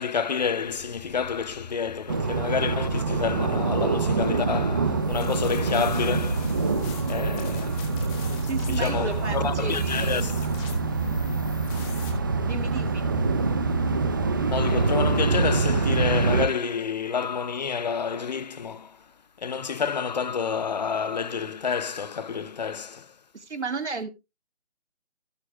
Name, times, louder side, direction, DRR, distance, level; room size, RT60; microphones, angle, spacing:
voice 1, 0.0-6.6 7.1-7.9 8.7-10.6 14.5-19.1 19.4-23.1, left 6 dB, 40° left, 0.7 m, -29 dB
sound 1, 0.6-16.4, left 4 dB, 70° left, 5.5 m, -46 dB
sound 2, 2.1-16.5, right 4 dB, 20° right, 0.6 m, -25 dB
sound 3, 5.0-12.1, left 8 dB, 10° left, 1.3 m, -45 dB
voice 2, 8.4-10.2 12.4-13.1 23.3-24.1, right 4 dB, 80° right, 2.5 m, -33 dB
17.5 x 8.3 x 2.3 m
figure-of-eight pair, 155°, 34 cm